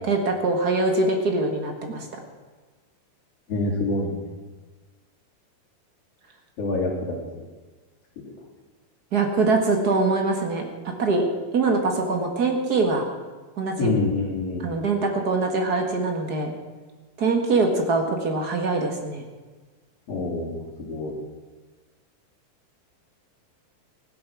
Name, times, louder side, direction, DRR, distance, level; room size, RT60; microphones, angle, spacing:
voice 1, 0.0-2.1 9.1-11.2 11.5-13.0 13.6-13.9 14.6-16.5 17.2-19.2, right 3 dB, 45° right, 3 dB, 1.3 m, -23 dB
voice 2, 3.5-4.2 6.6-7.2 13.8-14.7 20.1-21.1, left 2 dB, 45° left, -3 dB, 3.9 m, -26 dB
16.0 x 12.5 x 6.2 m, 1.3 s
omnidirectional pair, 4.2 m